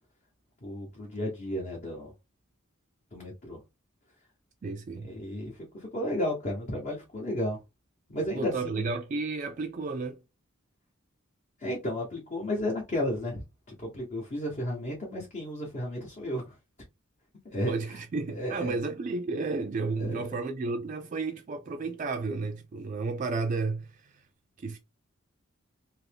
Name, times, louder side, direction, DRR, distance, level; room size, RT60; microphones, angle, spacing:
voice 1, 0.6-2.1 3.1-3.6 5.0-7.6 8.1-8.8 11.6-16.6 17.5-18.0 18.3-18.8 20.0-20.2, left 1 dB, 40° left, 0.9 m, -33 dB
voice 2, 4.6-5.1 8.4-10.2 17.7-24.2 24.6-24.8, right 3 dB, 40° right, 0.3 m, -32 dB
2.9 x 2.6 x 3.3 m
head